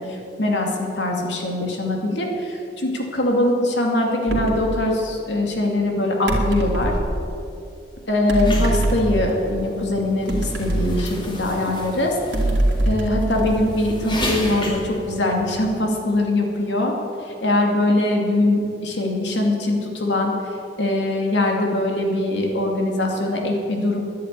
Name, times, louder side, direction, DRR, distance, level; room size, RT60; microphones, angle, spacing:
voice 1, 0.0-6.9 8.1-12.2 12.8-16.9 17.2-24.0, left 1 dB, 75° left, 1 dB, 2.5 m, -22 dB
sound 1, 4.3-4.7 6.3-7.2 8.3-9.5 10.3-11.6 12.3-14.2, right 1 dB, 90° right, 2.6 m, -24 dB
sound 2, 8.4-15.8, left 1 dB, 25° left, 2.3 m, -32 dB
10.5 x 10.5 x 9.7 m, 2.7 s
head